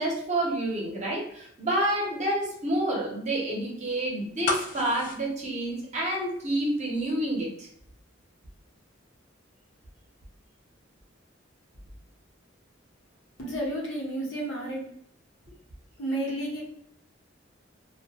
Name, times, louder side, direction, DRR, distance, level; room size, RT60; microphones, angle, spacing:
voice 1, 0.0-7.7, right 1 dB, 35° right, -2 dB, 0.7 m, -29 dB
sound 1, 4.4-6.5 6.8-6.9, left 3 dB, 40° left, 0.3 m, -32 dB
voice 2, 13.4-14.8 16.0-16.6, right 1 dB, 70° left, -3 dB, 0.9 m, -31 dB
2.1 x 2.1 x 2.8 m, 0.67 s
head